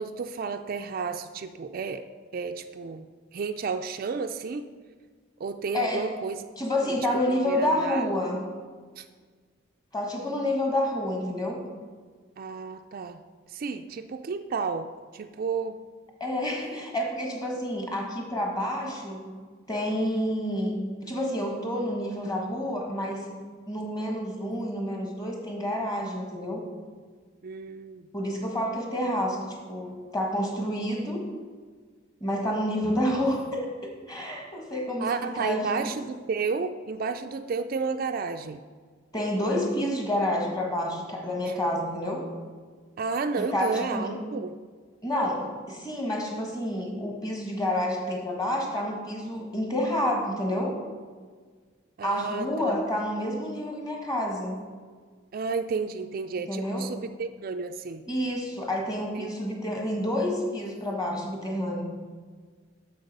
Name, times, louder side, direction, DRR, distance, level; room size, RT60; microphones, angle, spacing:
voice 1, 0.0-2.0 2.3-3.1 3.3-4.7 5.4-6.4 6.8-7.0 7.3-8.1 9.0-9.1 12.4-13.2 13.5-15.8 27.4-28.1 35.0-38.6 41.5-41.6 43.0-44.6 52.0-52.8 55.3-58.0 59.1-59.3, right 5 dB, 45° right, 7 dB, 0.3 m, -32 dB
voice 2, 5.7-6.1 6.6-8.5 9.9-11.7 16.2-19.3 19.7-23.3 23.7-26.6 28.1-31.3 32.2-35.9 39.1-42.3 43.4-44.2 45.0-50.8 52.0-54.6 56.5-56.9 58.1-61.8, left 1 dB, 20° left, 1 dB, 1.4 m, -29 dB
7.8 x 6.7 x 5.3 m, 1.6 s
head